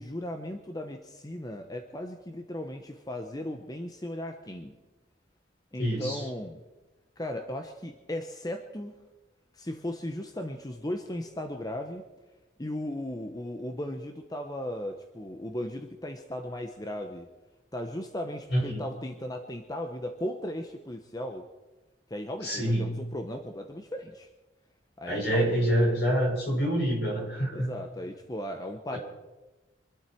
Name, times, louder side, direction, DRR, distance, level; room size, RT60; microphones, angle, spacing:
voice 1, 0.0-4.8 5.7-6.6 7.2-8.9 9.5-12.1 12.6-17.3 17.7-21.5 22.1-24.3 25.0-25.5 27.5-29.0, left 1 dB, 20° left, 6 dB, 1.0 m, -36 dB
voice 2, 5.8-6.3 18.5-18.9 22.4-22.9 25.0-27.7 28.9-29.0, equal, 65° left, -1 dB, 6.3 m, -26 dB
25.5 x 12.0 x 4.6 m, 1.2 s
head